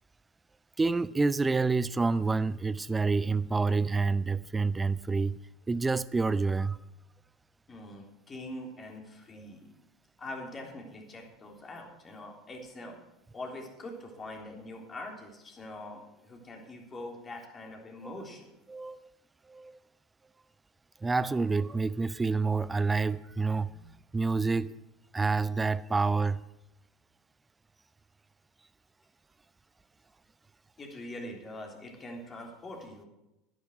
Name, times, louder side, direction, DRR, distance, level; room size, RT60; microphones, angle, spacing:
voice 1, 0.8-5.4 5.7-6.8 9.3-9.5 18.7-19.0 19.5-19.8 21.0-24.8 25.1-26.4, right 4 dB, 15° right, 0.4 m, -28 dB
voice 2, 7.7-9.8 10.2-13.0 13.3-18.5 30.8-33.1, left 1 dB, 30° left, 3.6 m, -43 dB
11.0 x 10.0 x 6.4 m
hypercardioid pair, 80°, 0 cm